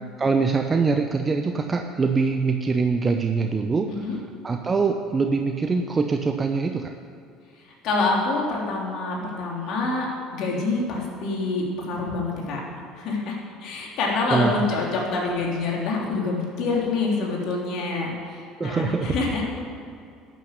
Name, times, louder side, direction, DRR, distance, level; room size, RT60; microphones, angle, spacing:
voice 1, 0.2-6.9 14.3-14.5 18.6-19.2, right 4 dB, 30° right, 5 dB, 1.0 m, -23 dB
voice 2, 3.9-4.2 7.8-12.6 12.9-19.5, left 3 dB, 60° left, -2 dB, 3.6 m, -26 dB
12.0 x 9.5 x 8.2 m, 2.4 s
hypercardioid pair, 65°, 0 cm